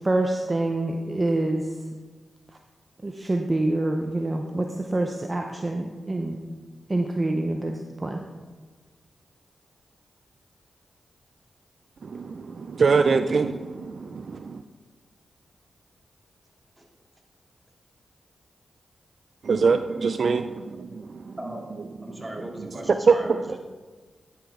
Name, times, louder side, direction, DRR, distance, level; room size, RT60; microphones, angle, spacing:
voice 1, 0.0-1.6 3.0-6.4 6.9-7.7 8.0-8.2, right 2 dB, 35° right, 3 dB, 0.7 m, -26 dB
voice 2, 12.0-14.6 19.4-21.3 23.1-23.2, right 5 dB, 65° right, 9 dB, 0.3 m, -23 dB
voice 3, 22.0-23.6, equal, 10° right, -1 dB, 2.3 m, -38 dB
11.0 x 5.9 x 3.6 m, 1.4 s
cardioid pair, 45°, 0 cm